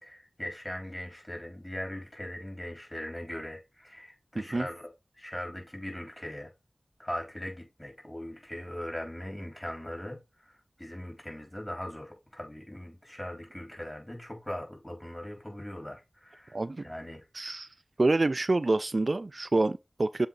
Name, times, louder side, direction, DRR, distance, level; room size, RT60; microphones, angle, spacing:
voice 1, 0.0-4.9 5.1-6.5 7.0-10.2 10.8-16.6 16.8-17.2, left 1 dB, 20° left, 3.6 m, -40 dB
voice 2, 16.5-16.9 17.3-17.7 18.0-20.3, right 2 dB, 60° right, 0.3 m, -27 dB
7.3 x 3.9 x 3.7 m
wide cardioid pair, 40°, 0 cm